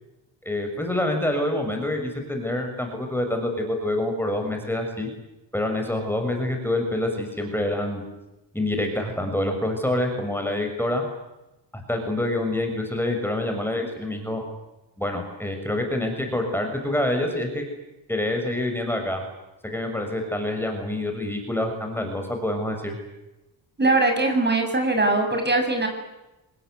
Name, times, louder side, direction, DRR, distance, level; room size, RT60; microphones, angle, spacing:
voice 1, 0.4-5.1 5.5-8.0 8.5-11.0 11.7-14.4 15.0-17.6 18.1-19.2 19.6-22.9, left 1 dB, 5° left, 4 dB, 6.4 m, -26 dB
voice 2, 23.8-25.9, right 2 dB, 25° right, 4 dB, 7.5 m, -21 dB
28.0 x 20.5 x 9.5 m, 0.98 s
cardioid pair, 100°, 44 cm